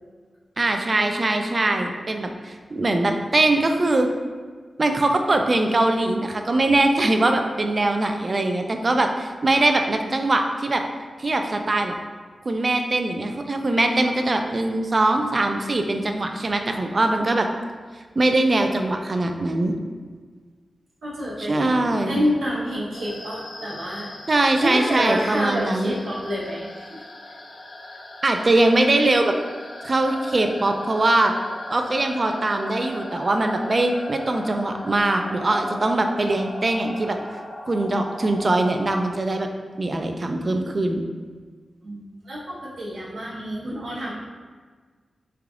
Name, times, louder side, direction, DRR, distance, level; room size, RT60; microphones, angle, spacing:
voice 1, 0.6-4.1 4.8-10.9 11.2-11.9 12.5-17.5 18.2-19.7 21.4-22.2 24.3-25.9 28.2-29.3 29.8-31.3 31.7-37.2 37.7-39.5 39.8-41.0, right 2 dB, 40° right, 5 dB, 0.3 m, -22 dB
voice 2, 21.0-24.1 24.6-27.0 41.8-44.1, equal, 90° right, -7 dB, 1.0 m, -28 dB
sound 1, 22.9-39.1, left 1 dB, 60° left, 0.5 m, -38 dB
3.7 x 3.3 x 2.4 m, 1.5 s
wide cardioid pair, 100°, 0 cm